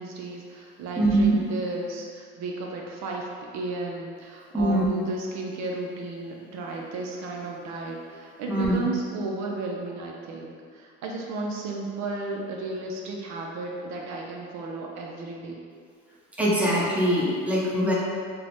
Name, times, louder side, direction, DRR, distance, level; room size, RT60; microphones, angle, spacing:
voice 1, 0.0-3.3 3.5-15.6, right 2 dB, 70° right, -1 dB, 0.4 m, -34 dB
voice 2, 1.0-1.4 4.5-4.9 8.5-8.8 16.4-17.9, right 1 dB, 5° right, -6 dB, 0.6 m, -22 dB
3.0 x 2.1 x 2.6 m, 2.2 s
cardioid pair, 85°, 29 cm